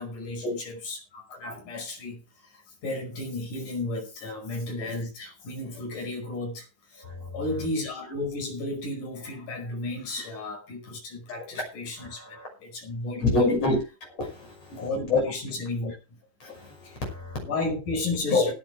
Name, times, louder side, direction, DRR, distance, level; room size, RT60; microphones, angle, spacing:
voice 1, 0.0-7.0 7.3-13.5 14.7-16.0 16.8-17.0 17.4-18.5, left 2 dB, 80° left, 6.8 m, -33 dB
voice 2, 12.0-12.5 13.2-13.8 14.2-14.7 15.1-15.2 16.4-16.7 17.0-17.4 18.3-18.5, left 3 dB, 55° left, 7.0 m, -26 dB
19.0 x 9.6 x 3.5 m
omnidirectional pair, 3.6 m